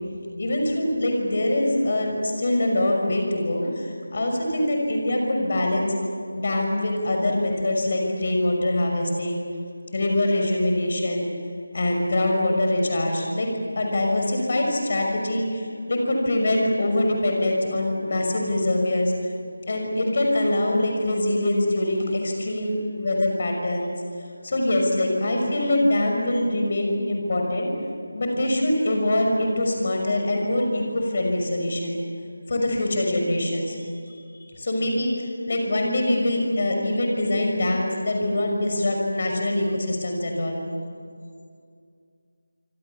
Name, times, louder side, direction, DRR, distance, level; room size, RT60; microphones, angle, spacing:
voice 1, 0.4-5.9 6.3-9.4 9.9-11.3 11.7-13.5 13.8-19.1 19.7-23.9 24.4-27.7 28.1-32.0 32.5-34.2 34.5-35.1 35.5-40.7, left 1 dB, 40° left, 2 dB, 6.1 m, -24 dB
27.0 x 26.0 x 7.3 m, 2.2 s
figure-of-eight pair, 165°, 0 cm